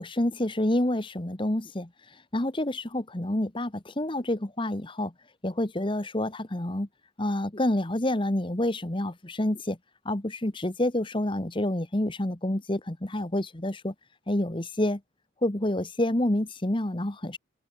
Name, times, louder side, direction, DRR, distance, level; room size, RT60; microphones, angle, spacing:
voice 1, 0.0-1.9 2.3-5.1 5.4-6.9 7.2-9.8 10.0-13.9 14.3-15.0 15.4-17.4, left 1 dB, 25° left, 1.2 m, -28 dB
head